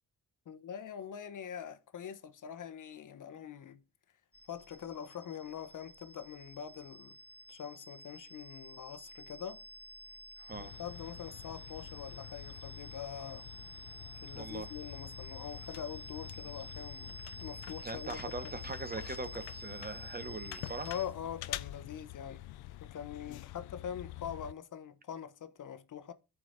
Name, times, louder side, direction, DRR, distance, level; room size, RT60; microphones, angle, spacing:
voice 1, 0.5-3.8 4.5-7.2 7.5-9.6 10.6-13.5 14.2-18.5 20.8-22.4 22.8-26.1, left 8 dB, 55° left, 1.0 m, -44 dB
sound 1, 4.3-21.0, right 1 dB, 60° right, 3.6 m, -50 dB
voice 2, 10.4-10.7 14.3-14.7 17.8-20.9, right 3 dB, 25° right, 1.4 m, -41 dB
sound 2, 10.5-24.5, left 16 dB, 85° left, 0.5 m, -47 dB
14.0 x 4.7 x 2.7 m
supercardioid pair, 60°, 37 cm